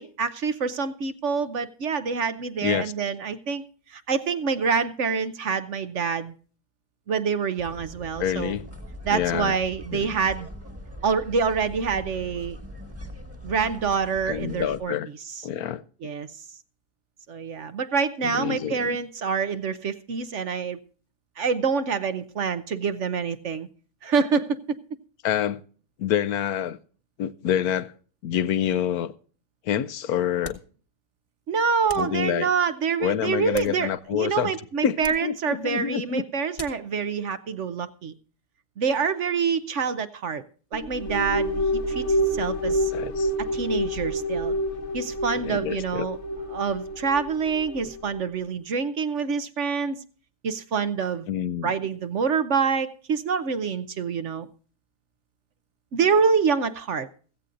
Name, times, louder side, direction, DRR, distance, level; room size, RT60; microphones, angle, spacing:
voice 1, 0.0-3.6 3.9-6.3 7.1-8.5 9.0-10.5 11.0-12.6 13.4-14.9 16.0-16.3 17.3-20.8 21.4-23.7 24.0-24.8 31.5-38.1 38.8-40.4 40.7-41.5 41.9-42.9 43.4-44.5 44.9-46.2 46.5-50.0 50.4-51.3 51.6-54.5 55.9-57.1, right 5 dB, 55° right, 1.0 m, -26 dB
voice 2, 2.6-2.9 8.2-8.7 9.1-9.6 9.9-10.2 14.3-15.1 15.4-15.8 18.2-19.0 25.2-25.6 26.0-26.8 27.2-27.9 28.2-29.1 29.6-30.6 32.0-32.5 33.0-34.5 34.8-36.2 42.7-43.3 45.3-46.1 51.3-51.7, left 10 dB, 75° left, 1.2 m, -27 dB
sound 1, 7.6-14.8, equal, 10° right, 1.4 m, -41 dB
sound 2, 30.4-30.8 31.9-32.2 33.3-34.2 35.0-35.3 36.5-36.9, left 2 dB, 25° left, 1.2 m, -42 dB
sound 3, 40.7-48.3, equal, 50° left, 1.3 m, -28 dB
16.0 x 15.0 x 2.5 m
omnidirectional pair, 1.7 m